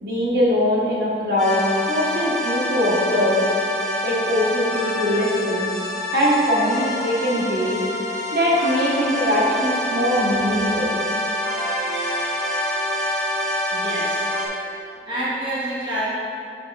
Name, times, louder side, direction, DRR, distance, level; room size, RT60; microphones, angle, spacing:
voice 1, 0.0-3.4 4.0-5.7 6.1-7.8 8.3-10.9, equal, 60° right, -5 dB, 1.4 m, -21 dB
sound 1, 1.4-14.5, left 1 dB, 5° left, 1.5 m, -26 dB
voice 2, 13.7-14.2 14.7-16.1, right 1 dB, 25° right, -9 dB, 1.3 m, -28 dB
7.2 x 6.7 x 2.5 m, 2.5 s
head